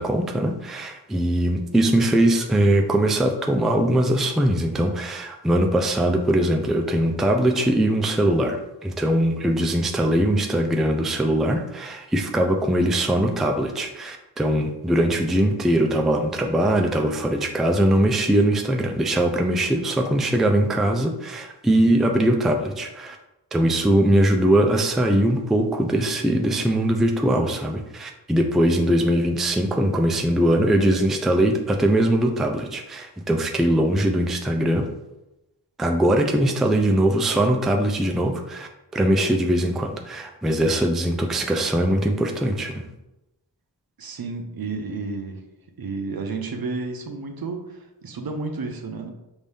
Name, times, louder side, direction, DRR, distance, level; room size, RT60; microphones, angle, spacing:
voice 1, 0.0-23.2 23.5-34.9 35.8-42.9, right 1 dB, ahead, 3 dB, 0.4 m, -21 dB
voice 2, 44.0-45.4 45.8-49.1, right 3 dB, 55° right, 4 dB, 0.7 m, -31 dB
5.1 x 2.7 x 3.4 m, 0.94 s
wide cardioid pair, 65°, 43 cm